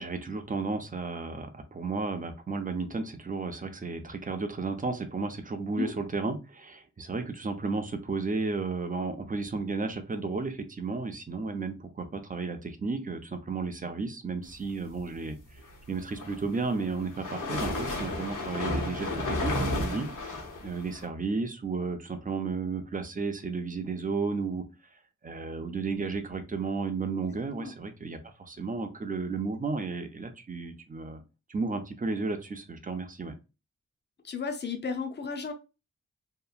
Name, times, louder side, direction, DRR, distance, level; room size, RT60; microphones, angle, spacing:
voice 1, 0.0-15.4 15.9-20.1 20.6-24.6 25.2-31.2 31.5-33.3, right 4 dB, 30° right, 8 dB, 0.4 m, -33 dB
sound 1, 16.0-21.1, left 2 dB, 80° left, 0.9 m, -32 dB
voice 2, 27.2-27.7 34.2-35.5, left 5 dB, 35° left, 6 dB, 0.5 m, -34 dB
2.8 x 2.3 x 2.3 m, 0.28 s
wide cardioid pair, 105°, 30 cm